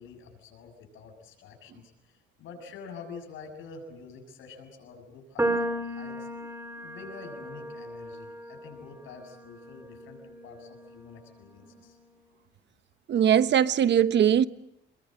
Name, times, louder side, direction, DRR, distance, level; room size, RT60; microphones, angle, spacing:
voice 1, 0.0-6.3 6.8-12.0, left 5 dB, 85° left, 6.9 m, -47 dB
sound 1, 5.4-11.7, right 1 dB, 10° right, 4.0 m, -35 dB
voice 2, 13.1-14.5, right 9 dB, 65° right, 1.1 m, -21 dB
28.5 x 22.5 x 7.7 m
cardioid pair, 90°, 20 cm